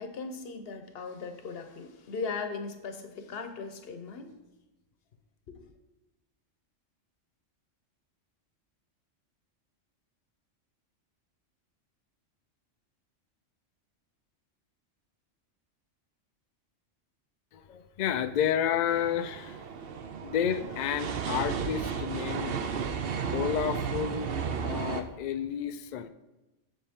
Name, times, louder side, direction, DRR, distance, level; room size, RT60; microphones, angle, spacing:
voice 1, 0.0-4.3 5.5-5.7, left 4 dB, 55° left, 6 dB, 1.0 m, -38 dB
voice 2, 17.5-19.6 20.2-22.6 23.3-26.1, left 9 dB, 80° left, 10 dB, 0.4 m, -31 dB
sound 1, 18.9-25.0, right 6 dB, 55° right, 0.7 m, -33 dB
7.3 x 6.8 x 3.6 m, 1.0 s
omnidirectional pair, 1.3 m